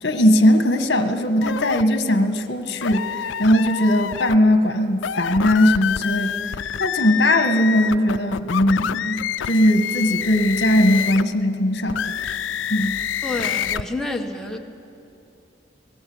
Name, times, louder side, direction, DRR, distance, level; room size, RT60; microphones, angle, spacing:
voice 1, 0.0-6.5 6.8-12.2 12.7-13.0, left 1 dB, 60° left, 7 dB, 1.6 m, -19 dB
sound 1, 1.4-1.8 2.8-4.4 4.9-11.3 11.9-13.8, left 9 dB, 85° left, 0.5 m, -27 dB
voice 2, 13.2-14.6, left 2 dB, 5° left, 1 dB, 1.4 m, -28 dB
24.0 x 18.5 x 8.0 m, 2.9 s
head